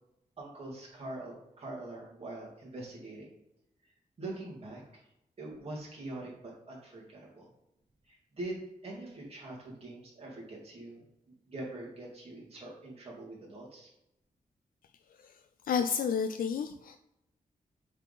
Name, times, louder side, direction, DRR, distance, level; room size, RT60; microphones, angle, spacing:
voice 1, 0.4-3.3 4.2-5.0 5.4-7.5 8.1-13.9, right 2 dB, 45° right, -4 dB, 2.4 m, -43 dB
voice 2, 15.7-17.0, left 6 dB, 80° left, 8 dB, 0.4 m, -30 dB
8.0 x 3.6 x 4.1 m, 0.85 s
wide cardioid pair, 165°, 15 cm